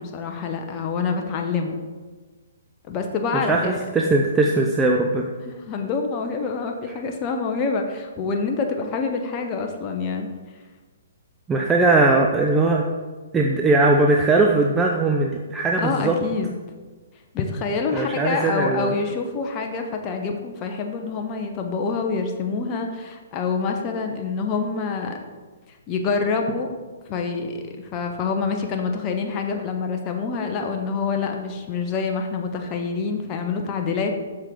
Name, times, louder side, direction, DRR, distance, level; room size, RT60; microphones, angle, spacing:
voice 1, 0.0-1.8 2.9-3.8 5.4-10.3 15.8-16.5 17.3-25.2 25.7-26.7 27.1-34.1, left 4 dB, 30° left, 3 dB, 0.8 m, -26 dB
voice 2, 3.5-5.3 11.5-12.8 13.3-16.1 17.9-18.9, right 2 dB, 15° right, 0 dB, 0.6 m, -19 dB
7.3 x 6.6 x 3.8 m, 1.4 s
figure-of-eight pair, 130°, 0 cm